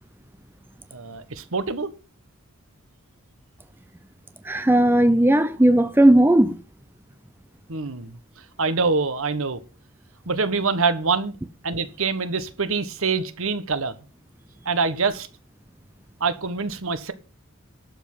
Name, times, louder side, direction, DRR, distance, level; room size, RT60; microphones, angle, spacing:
voice 1, 0.9-1.9 7.7-8.2 8.6-9.6 10.3-11.3 11.6-13.9 14.6-15.3 16.2-17.1, right 4 dB, 65° right, 1.4 m, -25 dB
voice 2, 4.4-6.6, right 1 dB, 10° right, 0.6 m, -16 dB
12.0 x 7.3 x 5.6 m
head